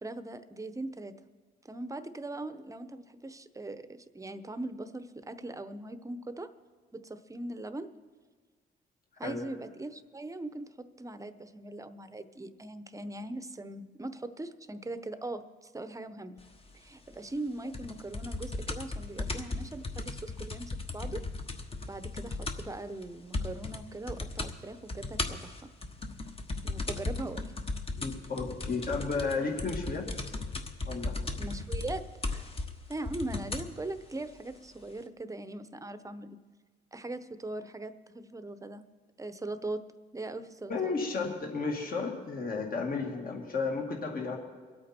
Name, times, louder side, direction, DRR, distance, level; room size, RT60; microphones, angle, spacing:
voice 1, 0.0-1.1 1.6-6.5 6.9-7.9 9.2-16.4 16.7-21.2 21.9-25.5 26.6-27.5 31.4-32.5 32.9-36.4 36.9-38.8 39.2-39.8 40.1-40.9, right 2 dB, 15° right, 11 dB, 0.9 m, -40 dB
sound 1, 17.7-22.8 23.0-23.1 23.3-23.8 24.1-24.5 24.9-33.7 34.5-34.6, left 3 dB, 30° left, 1.3 m, -36 dB
voice 2, 28.0-30.1 30.8-31.2 40.7-44.4, left 4 dB, 45° left, 1 dB, 2.3 m, -33 dB
24.0 x 8.6 x 4.4 m, 1.5 s
cardioid pair, 90°, 20 cm